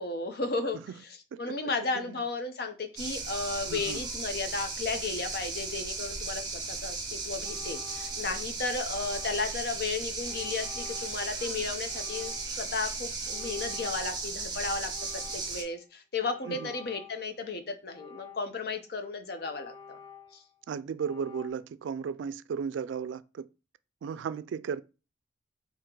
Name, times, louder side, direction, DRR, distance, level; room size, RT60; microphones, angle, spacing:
voice 1, 0.0-20.0 20.3-20.4, left 3 dB, 55° left, 0.7 m, -34 dB
sound 1, 3.0-15.6, right 3 dB, 20° right, 0.9 m, -36 dB
voice 2, 3.7-4.0 16.5-16.7 20.7-23.5 24.0-24.8, right 6 dB, 90° right, 0.3 m, -35 dB
sound 2, 7.4-8.5 8.9-9.7 10.2-11.3 11.9-12.7 13.2-14.5 14.9-15.7 16.2-17.3 17.9-18.8 19.3-20.6 21.0-21.5, left 5 dB, 20° left, 0.5 m, -50 dB
3.7 x 2.9 x 4.4 m
head